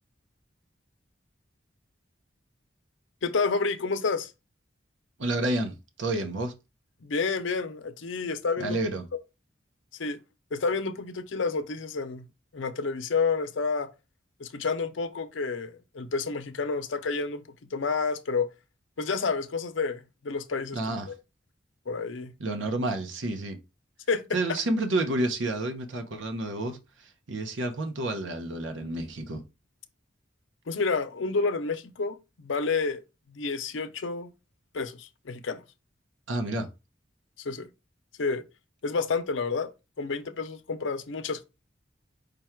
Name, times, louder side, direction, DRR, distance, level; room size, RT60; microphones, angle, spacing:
voice 1, 3.2-4.3 7.0-8.8 10.0-10.2 10.5-12.3 12.5-13.9 14.4-18.5 19.0-21.1 21.9-22.3 24.1-24.4 30.7-33.0 33.3-34.3 34.7-35.6 37.4-37.7 38.2-38.4 38.8-39.7 40.0-41.4, left 4 dB, 90° left, 0.6 m, -29 dB
voice 2, 5.2-6.5 8.6-9.1 20.7-21.1 22.4-23.6 24.3-29.4 36.3-36.7, right 2 dB, 85° right, 0.8 m, -30 dB
5.2 x 2.3 x 4.3 m
head